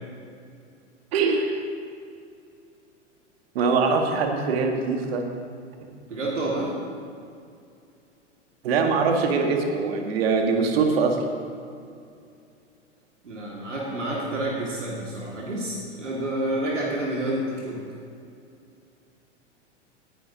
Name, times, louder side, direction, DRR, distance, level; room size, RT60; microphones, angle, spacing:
voice 1, 1.1-1.6 3.5-5.3 8.6-11.2, right 4 dB, 55° right, 3 dB, 1.7 m, -23 dB
voice 2, 6.1-6.7 13.2-17.8, right 1 dB, 75° right, -3 dB, 2.2 m, -29 dB
18.0 x 11.0 x 2.8 m, 2.4 s
figure-of-eight pair, 95°, 36 cm